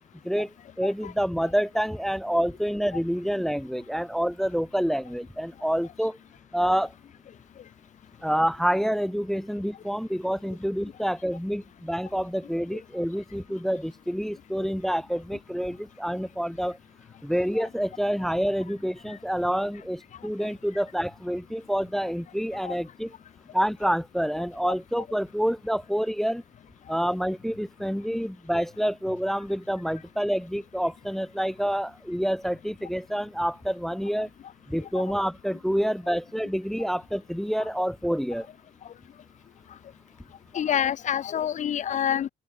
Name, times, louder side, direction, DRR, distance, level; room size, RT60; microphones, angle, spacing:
voice 1, 0.2-6.2 6.5-6.9 8.2-16.8 17.2-23.1 23.5-26.4 26.9-34.3 34.7-38.5, equal, ahead, 0.6 m, -27 dB
voice 2, 0.8-1.1 12.7-12.8 17.5-17.7 22.6-22.7 34.9-35.0 35.7-35.8 40.5-42.3, left 9 dB, 45° left, 1.1 m, -27 dB
open air
cardioid pair, 110°, 17 cm